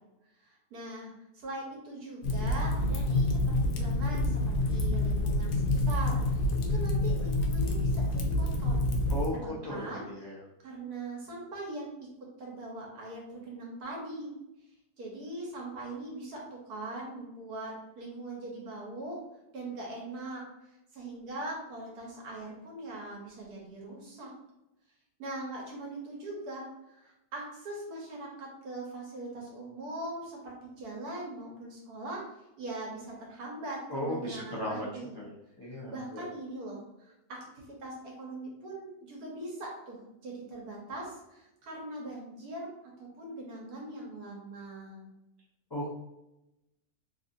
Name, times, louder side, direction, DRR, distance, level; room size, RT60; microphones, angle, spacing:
voice 1, 0.4-8.8 9.3-10.0 10.6-11.9 12.4-14.4 15.0-19.2 19.5-20.4 20.9-24.3 25.2-32.2 32.6-35.2 35.9-42.7 43.0-45.1, right 2 dB, 75° right, -2 dB, 1.5 m, -41 dB
Fire, 2.2-9.3, left 1 dB, 90° left, 1.1 m, -27 dB
voice 2, 9.6-10.4 33.9-34.9 35.1-35.3 35.6-36.2 45.7-45.9, left 1 dB, 40° left, -7 dB, 0.3 m, -36 dB
3.3 x 2.5 x 2.6 m, 0.92 s
omnidirectional pair, 1.6 m